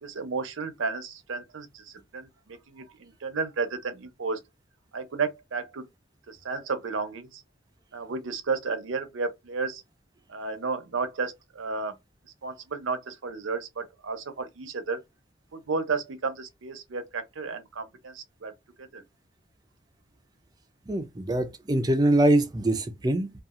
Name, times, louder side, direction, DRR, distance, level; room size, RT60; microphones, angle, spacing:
voice 1, 0.0-4.4 4.9-5.9 6.3-7.4 7.9-9.8 10.3-12.0 12.4-15.0 15.5-18.5 18.8-19.0, right 4 dB, 85° right, 0.7 m, -33 dB
voice 2, 20.9-23.3, right 1 dB, 20° right, 0.4 m, -23 dB
2.7 x 2.3 x 2.4 m
head